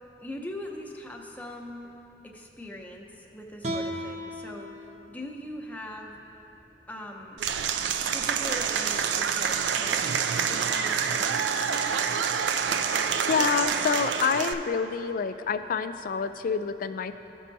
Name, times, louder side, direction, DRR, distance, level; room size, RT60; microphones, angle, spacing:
voice 1, 0.2-1.9 2.2-6.2 6.9-7.4 8.1-10.0 10.5-12.0, left 1 dB, 10° left, 0 dB, 0.6 m, -41 dB
sound 1, 3.6-6.8, equal, 40° right, 0.7 m, -38 dB
Applause / Crowd, 7.4-14.5, right 7 dB, 85° right, 0.4 m, -27 dB
voice 2, 13.3-17.1, left 6 dB, 50° left, 11 dB, 0.3 m, -27 dB
14.5 x 5.4 x 2.7 m, 2.9 s
head